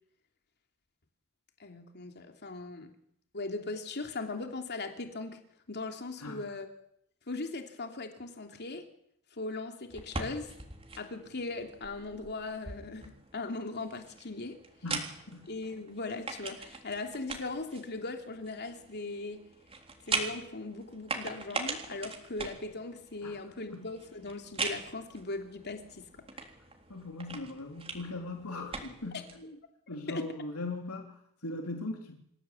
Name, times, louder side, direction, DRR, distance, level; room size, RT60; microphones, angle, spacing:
voice 1, 1.6-2.9 3.3-5.4 5.7-6.7 7.3-8.8 9.3-10.5 11.0-14.6 15.4-19.4 20.0-26.1 29.1-29.2 30.1-30.2, left 3 dB, 50° left, 5 dB, 3.1 m, -39 dB
sound 1, 9.9-29.4, right 3 dB, 25° right, 3.7 m, -41 dB
voice 2, 14.8-15.5 23.2-23.4 23.7-23.9 26.9-29.6 29.9-32.2, left 2 dB, 85° left, 3 dB, 3.4 m, -40 dB
27.0 x 16.5 x 8.5 m, 0.72 s
head